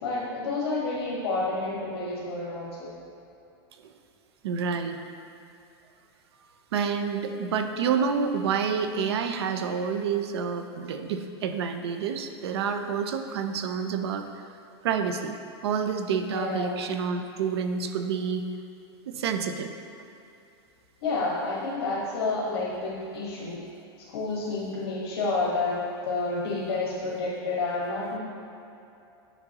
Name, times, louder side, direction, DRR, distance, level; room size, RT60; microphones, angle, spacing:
voice 1, 0.0-3.0 16.2-16.9 21.0-23.6 24.1-28.2, left 3 dB, 65° left, -5 dB, 1.4 m, -30 dB
voice 2, 4.4-5.0 6.7-14.3 14.8-15.3 15.6-18.4 19.1-19.7, right 6 dB, 75° right, 7 dB, 0.6 m, -28 dB
9.1 x 5.8 x 3.0 m, 2.7 s
supercardioid pair, 180°, 14 cm